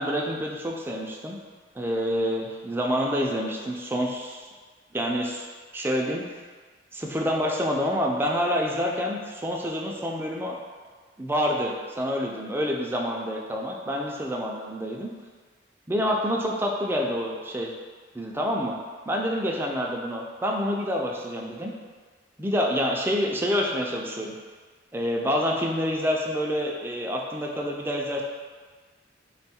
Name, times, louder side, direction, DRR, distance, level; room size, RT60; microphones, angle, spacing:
voice 1, 0.0-1.4 1.8-4.5 4.9-5.5 5.7-6.2 6.9-10.6 11.2-15.1 15.9-17.7 18.1-18.8 19.1-21.7 22.4-24.3 24.9-28.2, equal, 10° right, -1 dB, 0.4 m, -27 dB
3.5 x 2.3 x 4.2 m, 1.5 s
head